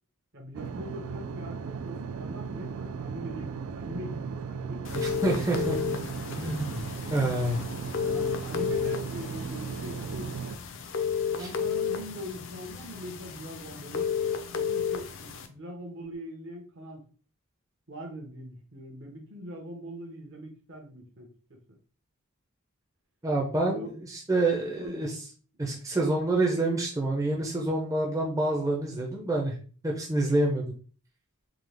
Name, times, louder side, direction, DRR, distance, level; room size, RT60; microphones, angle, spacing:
voice 1, 0.3-5.5 7.9-10.3 11.4-14.1 14.5-17.0 17.9-21.8 23.7-24.0 24.8-25.1 25.7-25.8, equal, 55° right, 2 dB, 1.0 m, -42 dB
sound 1, 0.5-10.6, right 6 dB, 75° right, 0.4 m, -36 dB
sound 2, 4.8-15.5, left 6 dB, 60° left, 0.5 m, -33 dB
voice 2, 4.9-5.8 6.4-7.6 11.4-11.5 23.2-25.1 25.6-29.5 29.8-30.6, right 2 dB, 15° right, -1 dB, 0.5 m, -27 dB
3.8 x 2.8 x 3.3 m, 0.39 s
head